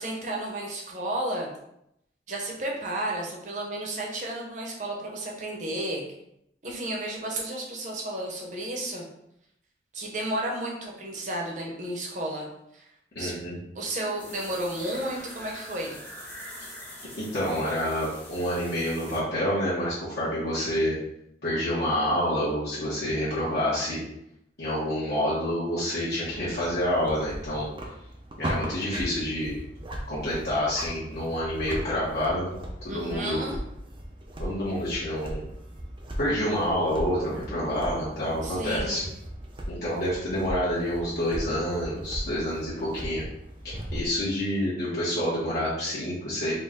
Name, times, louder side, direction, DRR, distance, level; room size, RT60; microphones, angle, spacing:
voice 1, 0.0-1.5 2.3-6.0 6.6-9.0 9.9-12.9 13.2-13.3 13.7-16.0 32.9-33.6 38.4-39.0, right 1 dB, 45° right, -1 dB, 0.9 m, -32 dB
voice 2, 13.1-13.6 17.2-21.0 21.4-24.0 24.6-27.7 28.4-29.5 30.1-32.5 32.8-33.4 34.4-35.5 36.2-39.0 39.7-43.2 43.6-46.5, equal, 65° left, -10 dB, 1.2 m, -28 dB
sound 1, 14.2-19.2, left 1 dB, 10° left, 0.8 m, -44 dB
sound 2, 26.3-44.1, equal, 30° right, 0.5 m, -38 dB
4.4 x 2.2 x 3.7 m, 0.79 s
head